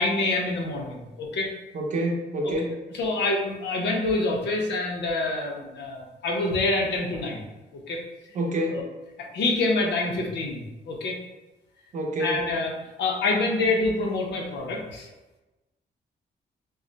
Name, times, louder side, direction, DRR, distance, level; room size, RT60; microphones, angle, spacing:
voice 1, 0.0-1.5 2.4-2.5 2.9-7.4 7.9-8.0 8.7-8.8 9.3-11.2 12.2-12.7 13.0-15.1, left 2 dB, 85° left, 0 dB, 0.6 m, -26 dB
voice 2, 1.7-2.8 8.3-8.8 11.9-12.4, right 1 dB, 45° right, -1 dB, 0.6 m, -27 dB
2.3 x 2.0 x 3.8 m, 1.1 s
wide cardioid pair, 160°, 18 cm